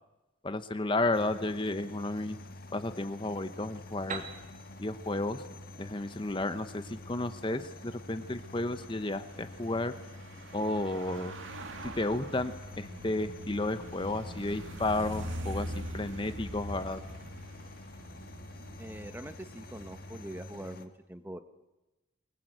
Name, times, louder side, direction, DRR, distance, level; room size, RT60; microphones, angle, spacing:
voice 1, 0.4-2.4 2.7-4.2 4.8-5.4 5.8-9.9 10.5-11.3 11.8-17.0, left 2 dB, 25° left, 10 dB, 0.9 m, -32 dB
sound 1, 1.1-20.8, left 2 dB, 50° left, 1.5 m, -48 dB
sound 2, 3.7-20.3, right 1 dB, 75° right, 2.1 m, -45 dB
Piano, 4.1-7.7, right 5 dB, 40° right, 2.2 m, -45 dB
voice 2, 18.8-21.4, right 1 dB, 10° right, 10 dB, 0.9 m, -43 dB
24.0 x 19.5 x 7.9 m, 1.0 s
head